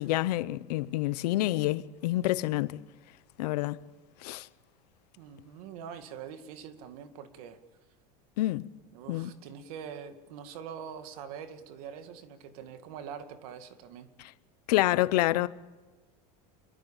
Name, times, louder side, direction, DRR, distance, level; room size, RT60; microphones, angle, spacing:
voice 1, 0.0-2.8 3.4-3.8 4.2-4.5 8.4-8.7 9.1-9.3 14.7-15.5, left 16 dB, 80° left, 0.9 m, -27 dB
voice 2, 5.2-7.6 8.9-14.1, right 7 dB, 65° right, 2.2 m, -44 dB
26.5 x 23.0 x 7.3 m
supercardioid pair, 175°, 20 cm